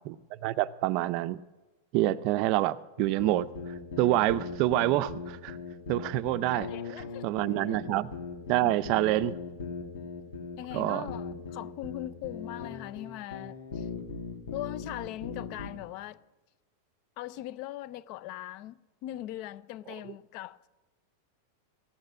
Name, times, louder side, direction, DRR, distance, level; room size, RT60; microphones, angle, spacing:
voice 1, 0.0-1.4 1.9-5.6 5.9-6.7 7.2-8.1 8.5-9.4 10.7-11.1, right 15 dB, 40° right, 0.5 m, -27 dB
sound 1, 3.0-15.7, left 5 dB, 80° left, 2.4 m, -39 dB
voice 2, 6.5-7.2 8.6-8.7 10.6-13.9 14.5-16.2 17.2-20.8, left 14 dB, 40° left, 0.5 m, -40 dB
15.5 x 6.6 x 9.4 m
supercardioid pair, 160°, 0 cm